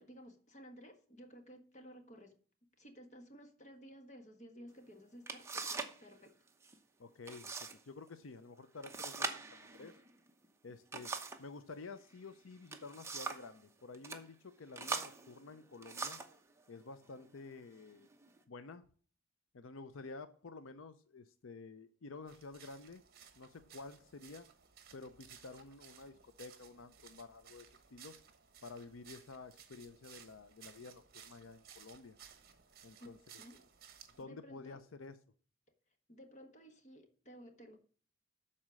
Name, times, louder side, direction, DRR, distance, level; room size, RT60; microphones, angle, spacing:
voice 1, 0.0-2.3 2.8-6.3 33.0-33.1 33.4-33.6 34.1-34.8 36.1-37.8, equal, 35° left, 1.5 m, -55 dB
sound 1, 4.8-4.9 5.3-6.0 6.3-6.8 7.3-7.8 8.1-8.2 8.8-11.5 12.5-13.5 13.9-14.2 14.7-16.4 17.2-17.3 17.9-18.4, right 4 dB, 15° right, 0.9 m, -42 dB
voice 2, 7.0-10.0 10.6-11.1 11.4-16.2 16.7-18.1 18.5-18.8 19.5-23.0 23.4-24.5 24.9-28.1 28.6-32.2 32.8-33.2 34.2-35.2, left 3 dB, 85° left, 0.6 m, -51 dB
sound 2, 22.3-34.2, right 8 dB, 50° right, 1.3 m, -59 dB
12.0 x 4.3 x 6.3 m
head